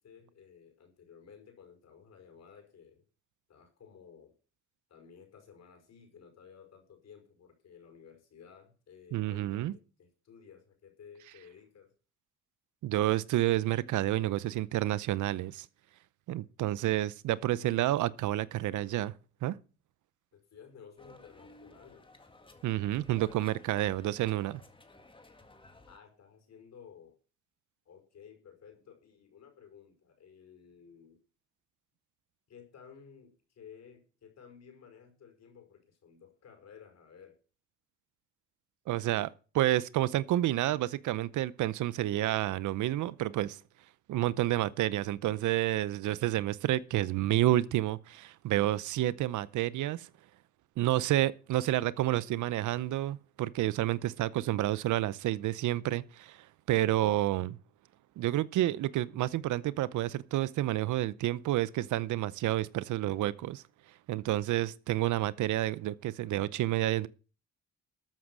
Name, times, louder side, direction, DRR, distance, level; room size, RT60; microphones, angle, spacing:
voice 1, 0.0-3.0 3.5-4.3 4.9-11.9 17.3-17.9 20.3-22.1 25.9-27.2 27.9-31.2 32.5-37.4, left 7 dB, 60° left, 5.3 m, -55 dB
voice 2, 9.1-9.7 12.8-15.7 16.3-19.1 19.4-19.6 22.6-24.6 38.9-43.6 44.1-50.1 50.8-57.6 58.2-63.6 64.1-67.1, right 14 dB, 75° right, 0.7 m, -29 dB
sound 1, 21.0-26.0, left 2 dB, 15° left, 1.9 m, -56 dB
13.5 x 7.5 x 6.2 m
cardioid pair, 90°, 30 cm